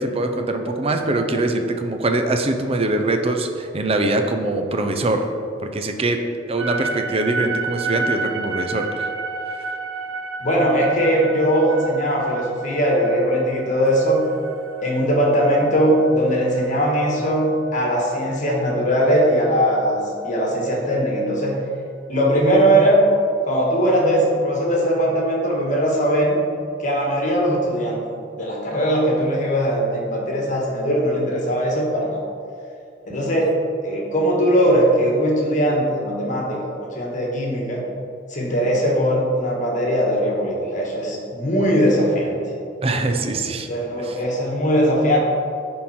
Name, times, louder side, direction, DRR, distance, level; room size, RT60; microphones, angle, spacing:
voice 1, 0.0-5.3 5.6-6.2 6.5-9.1 42.8-43.7 44.0-44.2, right 2 dB, 30° right, 5 dB, 0.5 m, -23 dB
sound 1, 6.6-18.8, right 4 dB, 85° right, 0.5 m, -31 dB
voice 2, 10.4-14.2 14.8-20.0 20.2-21.6 22.1-23.0 23.4-26.4 26.8-28.0 28.4-32.1 33.0-33.5 33.8-37.8 38.3-42.4 43.7-45.2, equal, 40° left, -2 dB, 1.5 m, -20 dB
10.5 x 3.8 x 4.3 m, 2.5 s
head